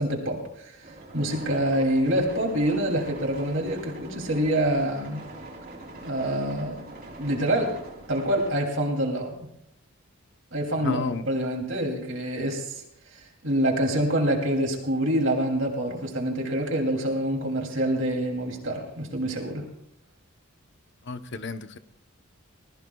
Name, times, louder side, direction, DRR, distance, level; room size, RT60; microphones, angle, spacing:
voice 1, 0.0-5.2 6.0-6.9 7.2-7.8 8.1-9.3 10.5-12.8 13.1-19.6, right 1 dB, 60° right, 1 dB, 3.0 m, -26 dB
sound 1, 0.8-8.5, right 2 dB, 45° right, 4.0 m, -43 dB
voice 2, 10.8-11.3 21.1-21.8, left 4 dB, 55° left, 10 dB, 0.9 m, -31 dB
27.5 x 21.0 x 2.4 m, 0.74 s
head